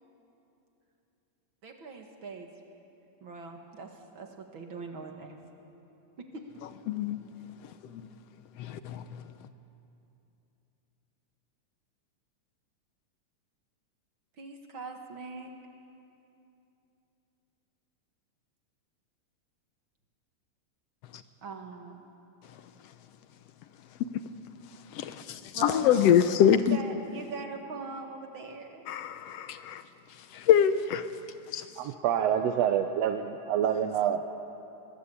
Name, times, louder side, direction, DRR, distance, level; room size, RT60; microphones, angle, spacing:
voice 1, 1.6-2.5 3.2-5.4 6.2-6.6 14.4-15.5 21.4-22.0 25.5-28.9, right 4 dB, 50° right, 4 dB, 2.1 m, -42 dB
voice 2, 6.9-7.2 7.9-8.1 8.6-9.0 24.9-26.8 28.9-29.8 30.3-31.1 31.5-31.6, left 9 dB, 70° left, 11 dB, 1.6 m, -24 dB
voice 3, 31.8-34.3, right 9 dB, 75° right, 6 dB, 1.8 m, -27 dB
21.5 x 21.0 x 8.3 m, 2.8 s
omnidirectional pair, 3.4 m